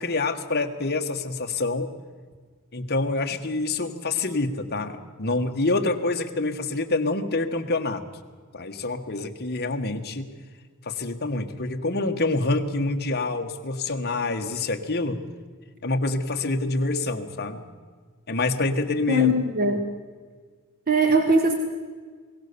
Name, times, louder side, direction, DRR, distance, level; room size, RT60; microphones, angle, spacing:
voice 1, 0.0-1.9 2.7-8.0 8.5-10.3 10.8-15.2 15.8-17.6 18.3-19.3 19.6-19.8, left 2 dB, 45° left, 5 dB, 1.7 m, -26 dB
voice 2, 19.1-19.8 20.9-21.5, right 1 dB, 40° right, 3 dB, 1.8 m, -20 dB
22.0 x 18.0 x 7.0 m, 1.6 s
head